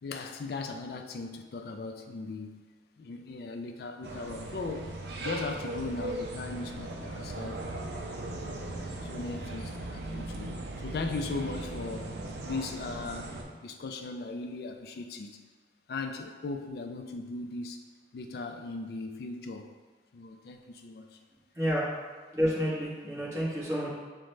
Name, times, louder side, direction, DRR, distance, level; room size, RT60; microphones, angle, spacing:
voice 1, 0.0-2.7 3.0-4.9 5.2-7.6 8.2-10.5 10.8-12.1 12.4-15.4 15.9-17.8 18.1-19.7 20.1-21.2, left 3 dB, 55° left, 5 dB, 0.3 m, -38 dB
sound 1, 4.0-13.4, right 2 dB, 65° right, 0.5 m, -38 dB
voice 2, 22.3-23.9, equal, 15° right, -7 dB, 1.0 m, -29 dB
6.2 x 2.1 x 3.1 m, 1.4 s
head